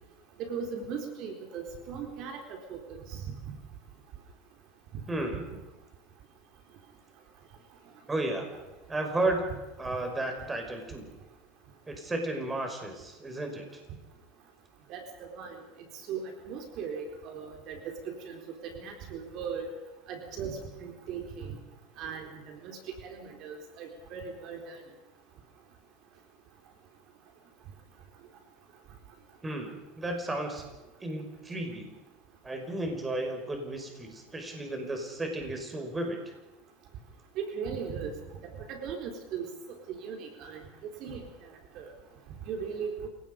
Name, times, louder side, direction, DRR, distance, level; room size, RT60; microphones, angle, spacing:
voice 1, 0.4-3.2 3.5-3.6 14.9-15.6 16.1-17.8 18.1-19.7 20.1-21.5 22.0-24.8 37.4-38.1 38.7-39.5 39.9-40.6 41.0-41.3 41.8-41.9 42.5-43.1, right 6 dB, 50° right, 3 dB, 4.1 m, -38 dB
voice 2, 5.1-5.5 8.1-8.5 8.9-9.5 9.8-11.1 11.9-13.7 29.4-30.7 31.0-31.9 32.4-36.2, right 2 dB, 15° right, 4 dB, 5.4 m, -33 dB
28.5 x 18.0 x 5.3 m, 1.1 s
supercardioid pair, 125°, 0 cm